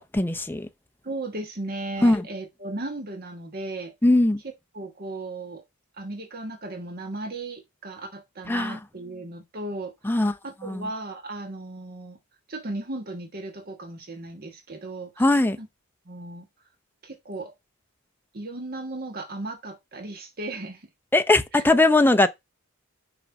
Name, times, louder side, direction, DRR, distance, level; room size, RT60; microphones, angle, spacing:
voice 1, 0.1-0.7 2.0-2.2 4.0-4.4 8.5-8.8 10.0-10.3 10.6-10.9 15.2-15.6 21.1-22.3, left 2 dB, 10° left, 0.6 m, -20 dB
voice 2, 1.0-3.9 4.7-5.6 5.9-12.2 12.5-15.3 15.6-15.7 16.0-16.5 17.0-17.5 18.3-20.9 21.5-21.6, right 2 dB, 45° right, 1.3 m, -36 dB
5.8 x 5.4 x 5.2 m
head